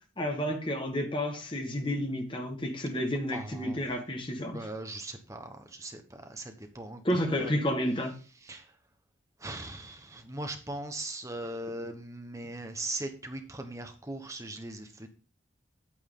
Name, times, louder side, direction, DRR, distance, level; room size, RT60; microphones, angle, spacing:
voice 1, 0.2-4.6 7.1-8.1, equal, 25° left, 1.6 m, -31 dB
voice 2, 3.3-3.8 4.5-7.0 7.3-7.5 8.4-8.7 9.4-15.1, right 2 dB, 15° right, 1.1 m, -39 dB
9.0 x 8.6 x 3.8 m
head